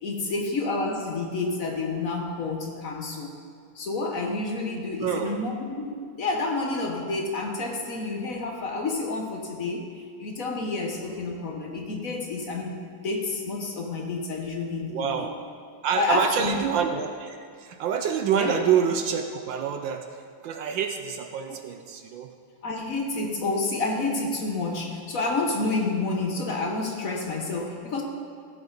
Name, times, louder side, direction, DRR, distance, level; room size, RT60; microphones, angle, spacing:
voice 1, 0.0-3.3 3.7-15.3 16.0-16.6 18.3-18.6 22.6-28.0, left 3 dB, 50° left, 1 dB, 1.1 m, -29 dB
voice 2, 5.0-5.4 14.9-15.4 15.8-22.3, right 7 dB, 70° right, 6 dB, 1.2 m, -27 dB
15.5 x 8.5 x 4.0 m, 2.2 s
omnidirectional pair, 2.4 m